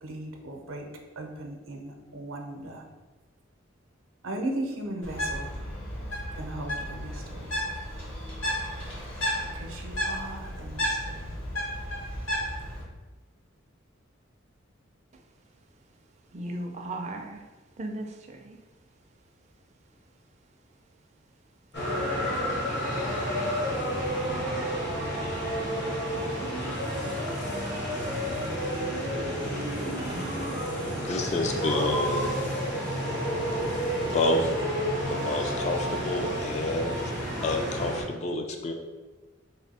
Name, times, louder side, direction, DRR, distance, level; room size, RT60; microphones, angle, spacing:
voice 1, 0.0-0.9 1.2-2.8 4.2-5.5 6.3-7.6 9.5-11.3, right 1 dB, 80° right, 2 dB, 0.6 m, -37 dB
Bird, 5.0-12.8, equal, 75° left, 1.3 m, -33 dB
voice 2, 16.3-17.4 17.8-18.6 22.2-22.6 30.1-30.4, right 1 dB, 35° right, 3 dB, 0.4 m, -37 dB
sound 1, 21.7-38.0, equal, 55° left, 1.1 m, -30 dB
voice 3, 31.0-32.4 34.0-34.5 34.9-37.1 37.4-38.7, left 2 dB, 35° left, 4 dB, 0.4 m, -29 dB
3.4 x 2.6 x 4.1 m, 1.2 s
head